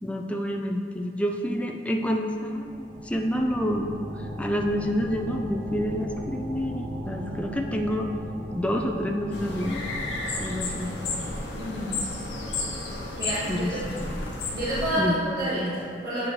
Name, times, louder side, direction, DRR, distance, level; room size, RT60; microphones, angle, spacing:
voice 1, 0.0-3.9 4.4-8.1 8.5-9.8 10.4-10.9 13.5-14.0 14.9-15.2, equal, 5° left, 2 dB, 0.3 m, -28 dB
sound 1, 2.3-15.0, equal, 35° right, 1.0 m, -39 dB
sound 2, 9.3-14.9, left 2 dB, 75° left, 1.0 m, -32 dB
voice 2, 11.6-11.9 13.2-13.8 14.5-16.3, equal, 60° right, -12 dB, 1.4 m, -29 dB
8.2 x 4.9 x 3.2 m, 2.2 s
head